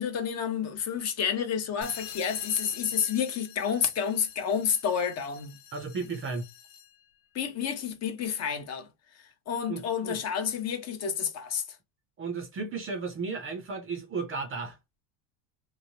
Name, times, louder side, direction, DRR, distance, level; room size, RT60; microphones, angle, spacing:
voice 1, 0.0-5.5 7.3-8.9 9.5-11.6, left 7 dB, 35° left, 0.6 m, -29 dB
sound 1, 1.8-7.0, left 10 dB, 80° left, 1.0 m, -46 dB
voice 2, 5.7-6.5 9.7-10.2 12.2-14.8, right 4 dB, 25° right, 0.5 m, -34 dB
3.1 x 2.1 x 2.7 m
supercardioid pair, 125°, 49 cm